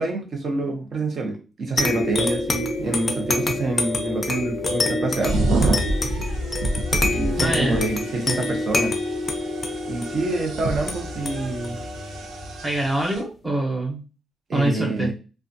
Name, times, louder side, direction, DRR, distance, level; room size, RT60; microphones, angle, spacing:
voice 1, 0.0-5.5 7.0-8.9 9.9-11.8 14.5-15.1, right 2 dB, 45° right, 2 dB, 0.8 m, -27 dB
sound 1, 1.8-12.9, left 2 dB, 30° left, 0.5 m, -27 dB
sound 2, 5.2-13.2, right 2 dB, 85° right, 0.5 m, -28 dB
voice 2, 7.4-7.8 12.6-14.0 14.5-15.1, right 1 dB, 15° right, 0 dB, 0.9 m, -24 dB
2.4 x 2.3 x 2.6 m, 0.33 s
cardioid pair, 130°, 0 cm